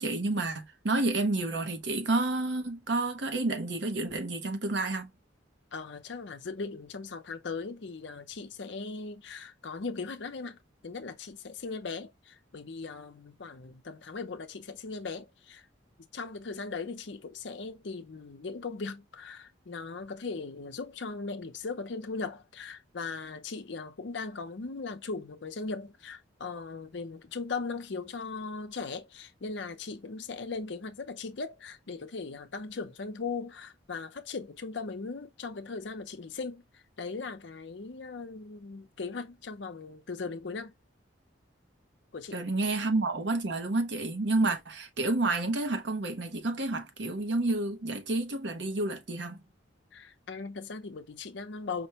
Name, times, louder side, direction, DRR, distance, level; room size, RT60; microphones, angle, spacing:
voice 1, 0.0-5.1 42.3-49.4, right 2 dB, 65° right, 0.8 m, -30 dB
voice 2, 5.7-15.7 16.1-40.7 42.1-42.4 49.9-51.9, left 4 dB, 65° left, 0.6 m, -39 dB
5.1 x 2.1 x 2.8 m
head